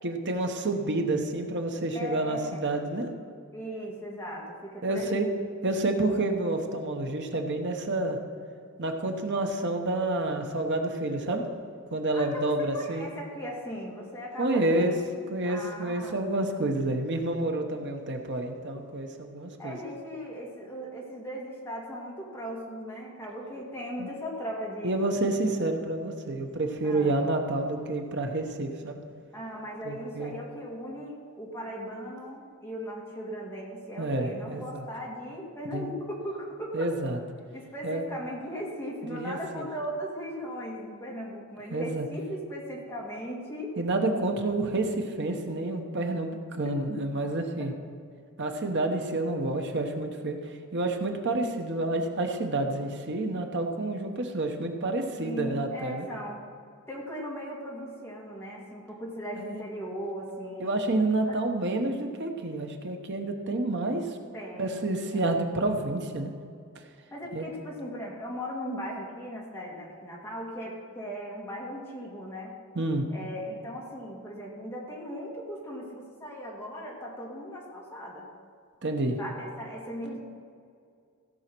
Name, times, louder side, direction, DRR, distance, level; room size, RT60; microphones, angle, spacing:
voice 1, 0.0-3.1 4.8-5.3 5.6-8.2 8.8-11.4 11.9-13.0 14.4-14.9 15.3-19.8 24.0-24.1 24.8-29.0 29.8-30.3 34.0-34.9 35.7-35.8 36.7-37.2 37.8-38.0 39.0-39.7 41.7-42.1 43.8-47.7 48.4-50.4 50.7-56.1 59.4-59.6 60.6-64.0 64.6-66.3 67.3-67.5 72.7-73.0 78.8-79.2, right 2 dB, 55° right, 4 dB, 1.1 m, -29 dB
voice 2, 1.9-2.9 3.5-5.3 12.1-15.1 15.4-16.2 19.6-25.1 26.8-27.1 29.3-36.9 37.5-43.8 46.9-47.0 47.6-47.7 55.2-56.4 56.9-60.8 61.3-61.4 64.3-64.8 65.1-65.3 67.1-72.5 73.1-78.3 79.2-80.2, equal, 10° left, -4 dB, 2.2 m, -38 dB
16.0 x 5.5 x 6.1 m, 2.2 s
head